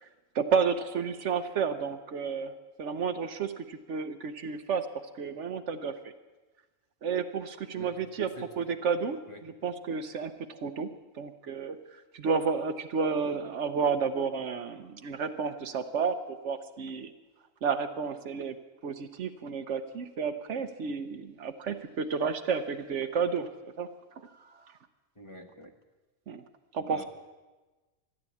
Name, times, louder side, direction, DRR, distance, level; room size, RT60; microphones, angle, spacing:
voice 1, 0.3-2.5 2.8-4.9 5.1-5.9 7.0-8.3 8.6-10.9 11.2-17.1 17.6-18.5 18.8-23.5 23.8-23.9 24.4-24.6 26.3-26.4 26.7-27.0, right 6 dB, 65° right, 9 dB, 1.0 m, -31 dB
voice 2, 7.7-8.6 9.3-9.5 25.1-25.8 26.8-27.0, equal, 25° left, 3 dB, 1.2 m, -46 dB
14.0 x 11.0 x 8.4 m, 1.2 s
omnidirectional pair, 1.4 m